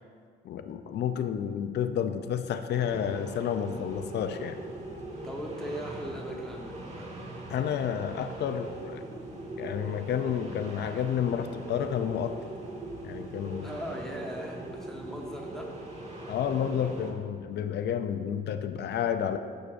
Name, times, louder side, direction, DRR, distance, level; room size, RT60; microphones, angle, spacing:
voice 1, 0.4-4.6 7.5-9.0 9.6-12.3 13.0-13.7 16.3-19.4, left 8 dB, 60° left, 9 dB, 0.5 m, -30 dB
sound 1, 2.8-17.1, right 1 dB, 35° right, 1.5 m, -41 dB
voice 2, 5.2-7.2 13.6-15.7, equal, ahead, -1 dB, 0.9 m, -39 dB
11.0 x 6.5 x 2.5 m, 2.1 s
cardioid pair, 90°, 20 cm